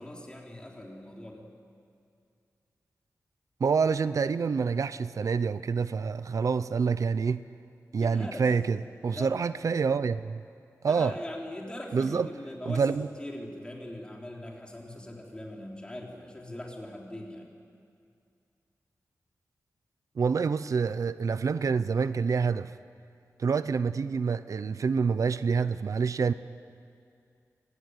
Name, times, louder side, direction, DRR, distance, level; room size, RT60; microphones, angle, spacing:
voice 1, 0.0-1.5 8.0-8.5 9.1-9.4 10.9-17.5, left 1 dB, 15° left, -1 dB, 4.1 m, -41 dB
voice 2, 3.6-7.4 7.9-10.4 10.8-11.1 11.9-12.3 12.7-13.1 20.2-22.7 23.4-26.3, right 5 dB, 70° right, 14 dB, 0.6 m, -27 dB
26.0 x 18.5 x 9.8 m, 2.4 s
wide cardioid pair, 130°, 6 cm